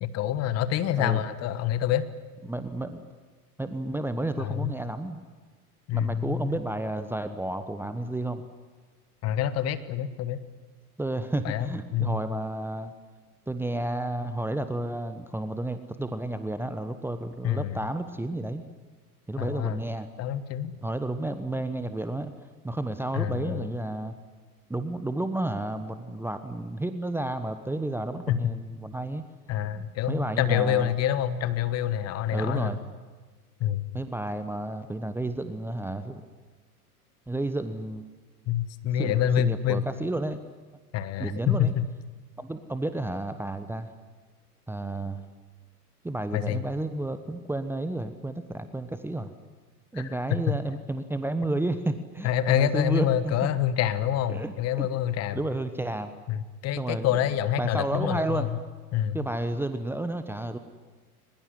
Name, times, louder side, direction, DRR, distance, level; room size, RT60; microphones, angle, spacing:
voice 1, 0.0-2.0 4.4-4.7 5.9-6.6 9.2-10.4 11.4-11.7 11.9-12.2 17.4-17.8 19.4-19.8 20.2-20.7 23.1-23.7 28.3-28.4 29.5-32.7 33.6-33.8 38.5-39.9 40.9-41.9 46.3-46.6 49.9-50.0 50.5-50.6 52.2-55.4 56.3-58.6 58.9-59.2, left 10 dB, 30° left, 13 dB, 1.4 m, -27 dB
voice 2, 2.4-3.0 3.6-5.2 5.9-8.4 11.0-12.9 13.5-18.6 19.3-20.1 20.8-22.3 22.6-24.1 24.7-29.2 29.8-30.9 32.3-32.8 33.9-36.2 37.3-38.1 39.0-40.4 41.2-41.7 42.4-43.9 44.7-45.2 46.0-49.3 49.9-53.3 54.3-54.9 55.3-56.1 56.8-57.1 57.6-58.5 59.1-60.6, right 2 dB, 5° right, 10 dB, 1.1 m, -31 dB
22.0 x 21.0 x 9.8 m, 1.4 s
figure-of-eight pair, 90°, 46 cm